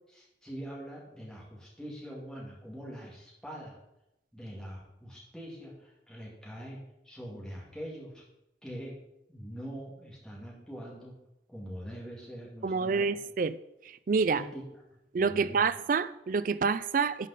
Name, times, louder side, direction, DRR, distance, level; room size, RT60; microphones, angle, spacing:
voice 1, 0.1-3.8 4.3-6.8 7.0-8.2 8.6-8.9 9.3-11.1 11.5-13.2 14.2-14.6 14.9-15.7, equal, 5° left, -5 dB, 2.1 m, -43 dB
voice 2, 12.6-13.6 13.9-14.4 15.1-17.3, right 5 dB, 45° right, 15 dB, 0.3 m, -28 dB
11.5 x 5.3 x 4.1 m, 0.88 s
head